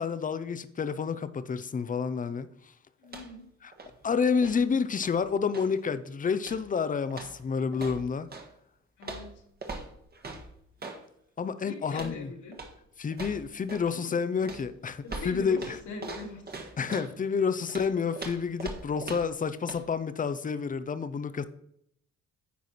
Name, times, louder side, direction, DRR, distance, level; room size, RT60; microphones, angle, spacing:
voice 1, 0.0-2.5 3.6-3.7 4.0-8.3 11.4-12.3 13.0-15.8 16.8-21.4, left 6 dB, 25° left, 0.6 m, -29 dB
voice 2, 3.0-3.4 9.0-9.3 11.6-12.5 13.9-14.1 15.0-15.6 15.9-16.5, left 3 dB, 75° left, 2.6 m, -41 dB
sound 1, 3.0-3.5 3.7-5.8 6.4-6.8 7.1-8.5 9.0-11.0 11.9-12.2 12.5-12.8 13.1-13.9 14.4-17.1 17.7-19.4 19.7-19.8, right 3 dB, 30° right, 1.5 m, -42 dB
9.5 x 4.6 x 4.2 m
cardioid pair, 90°, 30 cm